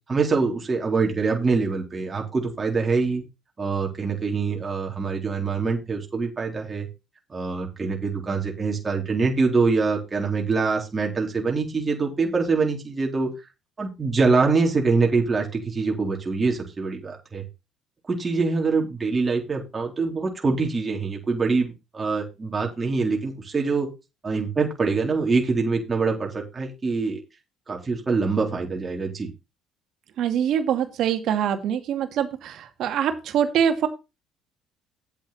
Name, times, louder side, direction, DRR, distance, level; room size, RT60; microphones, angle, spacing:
voice 1, 0.1-3.2 3.6-6.9 7.3-13.3 13.8-17.4 18.1-23.9 24.2-27.2 27.7-29.3, right 4 dB, 25° right, 0 dB, 3.8 m, -24 dB
voice 2, 30.2-33.9, right 9 dB, 65° right, 7 dB, 2.3 m, -24 dB
9.2 x 8.2 x 4.3 m, 0.27 s
cardioid pair, 105°, 0 cm